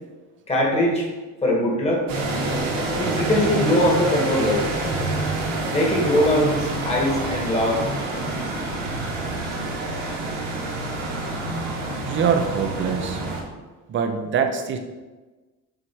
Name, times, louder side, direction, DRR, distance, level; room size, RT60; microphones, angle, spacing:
voice 1, 0.5-1.1 1.4-2.0 3.0-4.6 5.7-7.8, left 1 dB, 20° left, -3 dB, 1.8 m, -21 dB
sound 1, 2.1-13.4, right 2 dB, 70° right, 1.7 m, -27 dB
voice 2, 12.0-13.2 13.9-14.8, right 6 dB, 35° right, 6 dB, 0.7 m, -23 dB
6.4 x 4.6 x 4.6 m, 1.2 s
cardioid pair, 150°, 34 cm